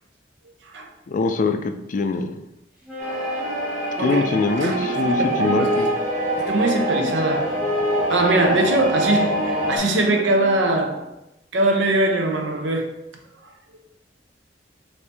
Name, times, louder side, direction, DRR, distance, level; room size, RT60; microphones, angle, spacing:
voice 1, 1.1-1.6 1.9-2.4 4.0-5.9, left 3 dB, 45° left, 0.3 m, -23 dB
Wind instrument woodwind instrument, 2.9-10.9, equal, 5° right, 1.1 m, -30 dB
sound 1, 3.0-9.8, right 1 dB, 40° right, 0.9 m, -25 dB
voice 2, 4.0-4.3 4.6-5.8 6.4-7.6 8.1-11.1 11.5-13.0, right 2 dB, 90° right, 0.7 m, -22 dB
4.3 x 2.7 x 3.4 m
head